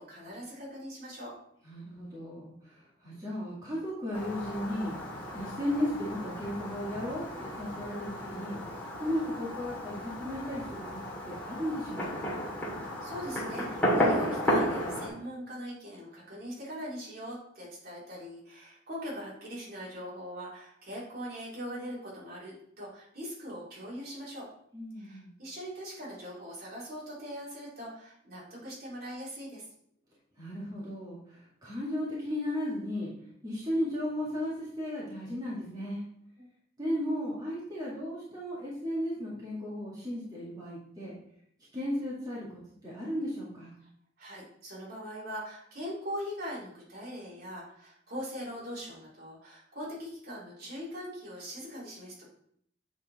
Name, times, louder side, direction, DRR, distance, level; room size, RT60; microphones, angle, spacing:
voice 1, 0.0-1.3 12.8-24.5 25.0-29.6 36.4-36.5 44.2-52.3, equal, 50° right, -6 dB, 3.2 m, -41 dB
voice 2, 1.6-5.0 5.3-8.6 9.0-12.2 24.7-25.3 30.4-33.1 33.4-36.1 36.8-41.1 41.7-43.7, equal, 20° right, -8 dB, 2.0 m, -35 dB
Fireworks, 4.1-15.1, equal, 10° left, 2.0 m, -33 dB
8.2 x 4.5 x 4.1 m, 0.68 s
head